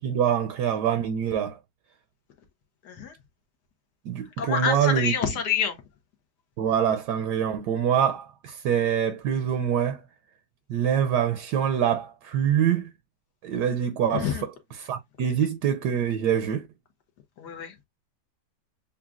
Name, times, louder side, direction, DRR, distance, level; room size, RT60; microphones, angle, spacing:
voice 1, 0.0-1.6 4.0-5.1 6.6-10.0 10.7-12.9 13.4-14.5 14.8-16.7, right 9 dB, 75° right, 1.2 m, -25 dB
voice 2, 4.4-5.8 14.1-14.4 17.4-17.7, left 7 dB, 70° left, 1.4 m, -27 dB
7.1 x 2.4 x 2.4 m
omnidirectional pair, 1.9 m